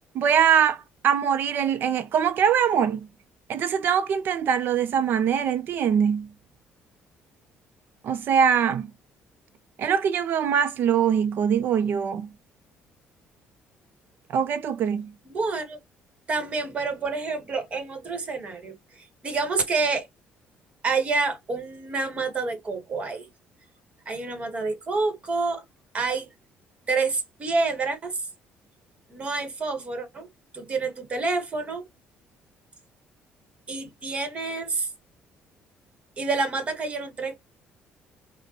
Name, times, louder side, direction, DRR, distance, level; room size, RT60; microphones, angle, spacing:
voice 1, 0.1-3.1 3.5-6.3 8.0-8.9 9.8-12.3 14.3-15.1, right 8 dB, 55° right, 0.5 m, -23 dB
voice 2, 15.2-15.8 16.3-20.1 20.8-23.3 24.1-25.6 25.9-26.3 26.9-28.2 29.1-30.3 30.5-31.8 33.7-34.9 36.2-37.4, right 3 dB, 30° right, 1.3 m, -28 dB
5.1 x 2.2 x 2.9 m
cardioid pair, 140°, 4 cm